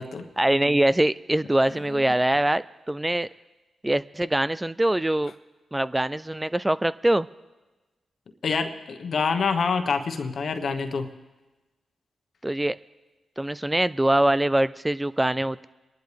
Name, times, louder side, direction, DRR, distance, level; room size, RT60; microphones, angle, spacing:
voice 1, 0.4-3.3 3.8-5.3 5.7-7.3 12.4-12.8 13.4-15.7, right 1 dB, 15° right, 16 dB, 0.4 m, -23 dB
voice 2, 8.4-11.1, left 5 dB, 65° left, 7 dB, 1.2 m, -26 dB
27.0 x 11.0 x 3.4 m, 1.2 s
supercardioid pair, 50°, 0 cm